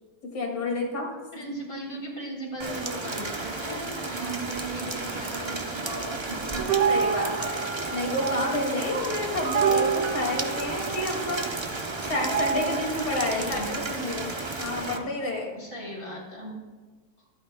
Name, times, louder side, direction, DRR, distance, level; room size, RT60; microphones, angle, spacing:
voice 1, 0.3-1.1 6.9-7.6 7.9-11.4 12.1-14.3 14.6-15.6, left 2 dB, 70° left, 0 dB, 3.0 m, -29 dB
voice 2, 1.3-6.6 13.3-13.7 14.9-15.0 15.6-16.5, right 1 dB, 50° left, -3 dB, 4.0 m, -37 dB
Rain, 2.6-15.0, right 3 dB, 35° right, 0.4 m, -33 dB
sound 1, 6.6-13.1, right 6 dB, 60° right, 1.3 m, -28 dB
25.0 x 9.0 x 2.3 m, 1.3 s
omnidirectional pair, 1.8 m